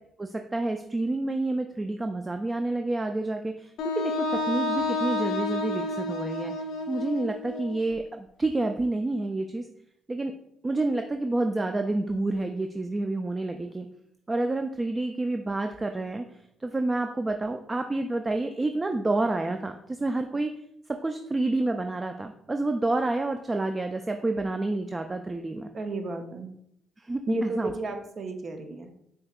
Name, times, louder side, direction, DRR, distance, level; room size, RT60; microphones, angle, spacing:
voice 1, 0.2-6.5 6.9-9.6 10.1-10.3 10.6-13.9 14.3-16.2 16.6-20.5 20.9-25.7 27.0-27.7, right 2 dB, 25° right, 6 dB, 0.3 m, -29 dB
Wind instrument woodwind instrument, 3.8-7.8, left 2 dB, 80° left, 0.4 m, -30 dB
voice 2, 25.7-26.5 27.3-28.9, right 2 dB, 50° right, 6 dB, 0.7 m, -32 dB
5.4 x 2.8 x 2.4 m, 0.73 s
supercardioid pair, 60°, 0 cm